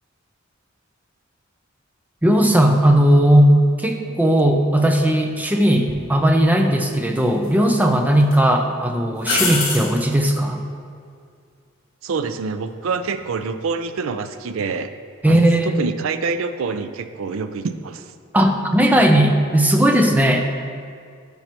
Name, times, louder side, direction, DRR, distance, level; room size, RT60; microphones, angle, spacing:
voice 1, 2.2-3.5 3.8-10.6 15.2-15.9 18.3-20.5, right 1 dB, 10° right, 4 dB, 0.5 m, -17 dB
sound 1, 5.9-6.0 7.2-7.8 8.2-8.3 9.2-9.9 13.0-13.4, left 3 dB, 55° left, 1.8 m, -24 dB
voice 2, 12.0-14.9 15.2-18.1, right 4 dB, 75° right, 11 dB, 0.4 m, -26 dB
12.0 x 5.5 x 3.0 m, 2.3 s
head